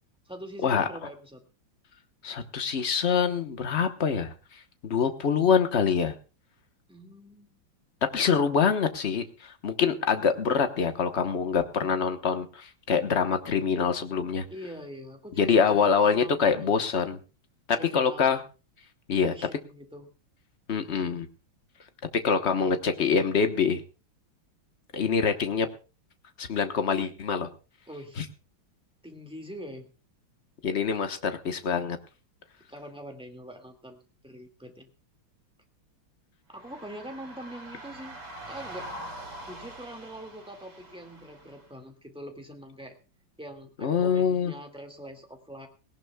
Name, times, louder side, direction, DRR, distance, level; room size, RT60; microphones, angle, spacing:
voice 1, 0.3-1.4 6.9-7.6 14.5-16.7 17.7-18.3 19.2-20.1 27.9-28.2 29.0-29.9 32.7-34.9 36.5-38.2 38.5-38.9 39.4-43.0 43.4-45.7, equal, 5° right, 3 dB, 1.9 m, -43 dB
voice 2, 2.2-4.3 4.8-6.1 8.1-14.4 15.4-17.2 17.7-18.4 19.1-19.3 20.7-21.3 22.2-23.8 24.9-25.7 26.4-27.5 28.2-28.3 30.6-32.0 43.8-44.5, left 6 dB, 40° left, 7 dB, 1.2 m, -25 dB
sound 1, 36.5-41.7, right 1 dB, 80° right, 4.4 m, -44 dB
19.0 x 18.0 x 2.3 m, 0.33 s
omnidirectional pair, 2.2 m